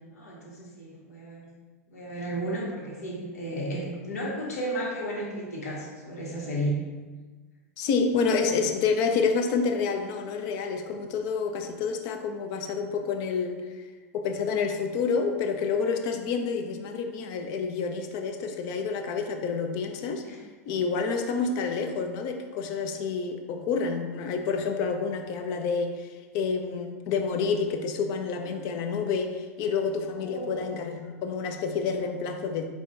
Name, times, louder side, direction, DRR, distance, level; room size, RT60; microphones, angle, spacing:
voice 1, 0.0-1.5 1.9-6.7 20.2-20.4 30.2-30.6, right 1 dB, 80° left, -4 dB, 1.3 m, -33 dB
voice 2, 7.8-13.7 14.1-20.2 20.7-26.1 26.3-32.7, left 5 dB, 50° left, 5 dB, 0.5 m, -28 dB
4.8 x 2.3 x 3.9 m, 1.3 s
hypercardioid pair, 100°, 8 cm